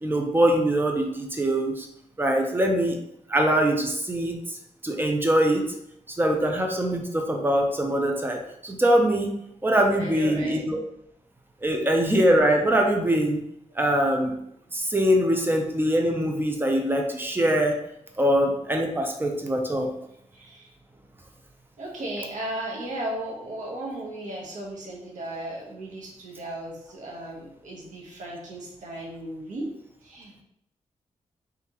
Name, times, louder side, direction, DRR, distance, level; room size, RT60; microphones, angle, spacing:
voice 1, 0.0-1.9 2.2-3.0 3.3-4.6 4.8-5.6 6.2-9.3 9.6-10.8 11.6-13.4 13.8-14.4 14.7-17.8 18.2-19.9, right 1 dB, 15° right, 2 dB, 0.7 m, -23 dB
voice 2, 9.9-10.6 20.3-20.7 21.8-29.7 30.0-30.4, right 1 dB, 85° right, -2 dB, 1.1 m, -35 dB
3.6 x 3.4 x 3.0 m, 0.78 s
cardioid pair, 85°, 13 cm